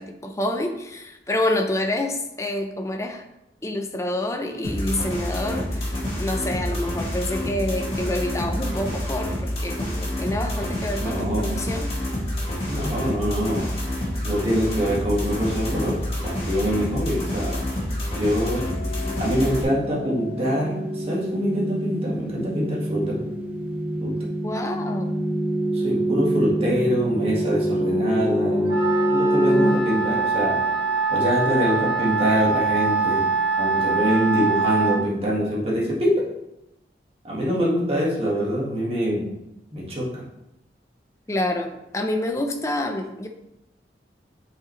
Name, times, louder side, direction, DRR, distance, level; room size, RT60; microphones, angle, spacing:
voice 1, 0.0-3.2 3.6-11.9 24.4-25.4 41.3-43.3, left 1 dB, 15° left, 4 dB, 0.6 m, -28 dB
sound 1, 4.6-19.6, left 1 dB, 30° left, 2.3 m, -28 dB
voice 2, 11.0-11.5 12.7-13.7 14.2-17.6 18.2-18.7 19.2-23.2 24.0-24.3 25.7-28.8 29.1-30.6 31.1-33.3 33.6-36.3 37.2-39.3 39.7-40.2, equal, 35° right, -5 dB, 1.8 m, -24 dB
sound 2, 18.2-31.0, right 1 dB, 10° right, 0.8 m, -26 dB
Wind instrument woodwind instrument, 28.7-35.0, right 4 dB, 70° right, 1.5 m, -24 dB
8.7 x 4.9 x 3.2 m, 0.87 s
head